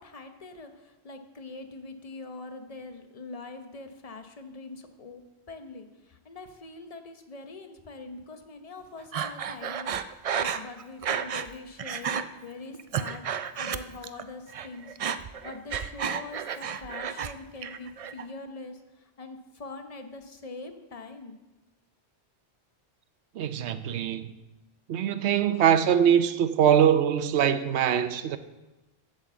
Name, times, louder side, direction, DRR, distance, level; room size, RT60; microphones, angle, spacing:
voice 1, 0.0-5.2 5.5-13.3 13.6-21.4, left 3 dB, 35° left, 0.9 m, -43 dB
Breathing, 9.1-11.5 11.8-12.2 12.7-14.2 14.5-17.3 17.6-18.2, right 7 dB, 60° right, 0.3 m, -32 dB
voice 2, 23.3-24.3 24.9-28.4, right 9 dB, 85° right, 0.9 m, -23 dB
8.6 x 8.0 x 6.9 m
omnidirectional pair, 1.1 m